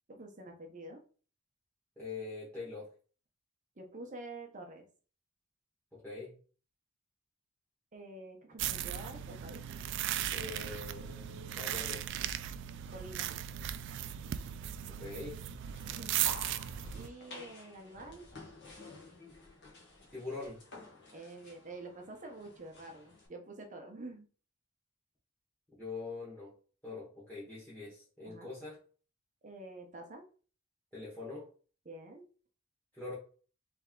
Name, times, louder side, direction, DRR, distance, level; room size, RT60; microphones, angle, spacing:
voice 1, 0.1-1.0 3.8-4.9 7.9-9.6 12.9-13.4 15.8-16.3 16.9-18.3 21.1-24.3 28.3-28.5 29.4-30.2 31.9-32.2, right 2 dB, 40° right, 3 dB, 0.8 m, -48 dB
voice 2, 2.0-2.9 5.9-6.3 10.3-12.0 14.9-15.4 20.1-20.6 25.8-26.5 26.8-28.8 30.9-31.5 32.9-33.1, left 3 dB, 5° left, -9 dB, 1.5 m, -43 dB
sound 1, 8.6-17.1, right 11 dB, 60° right, 0.3 m, -37 dB
sound 2, 15.6-23.3, left 2 dB, 60° left, 1.4 m, -51 dB
3.4 x 3.4 x 3.7 m, 0.40 s
head